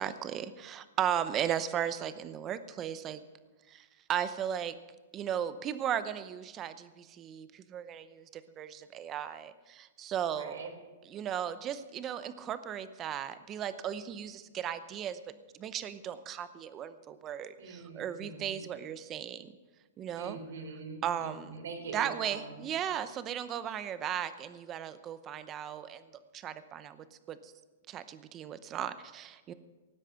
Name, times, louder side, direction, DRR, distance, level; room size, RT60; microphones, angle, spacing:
voice 1, 0.0-3.2 3.7-4.7 5.1-10.6 11.1-15.2 15.6-19.5 20.0-20.4 21.0-21.5 21.9-26.0 26.3-27.5 27.9-29.5, right 9 dB, 25° right, 13 dB, 0.7 m, -36 dB
voice 2, 10.3-10.7 17.6-18.6 20.2-22.6, right 4 dB, 85° right, 2 dB, 4.1 m, -43 dB
18.0 x 9.8 x 5.8 m, 1.2 s
hypercardioid pair, 155°, 0 cm